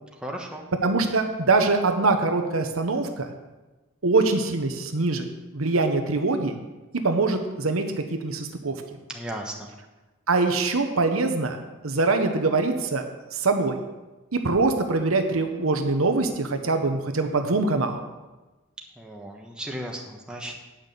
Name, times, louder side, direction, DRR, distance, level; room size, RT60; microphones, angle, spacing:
voice 1, 0.2-0.6 9.1-9.7 19.0-20.5, right 1 dB, 5° right, 0 dB, 1.1 m, -35 dB
voice 2, 0.8-3.3 4.0-5.3 5.5-6.5 7.0-8.8 10.3-11.6 11.8-13.0 13.3-13.8 14.3-18.0, right 3 dB, 85° right, 5 dB, 1.0 m, -23 dB
9.0 x 6.0 x 6.7 m, 1.1 s
head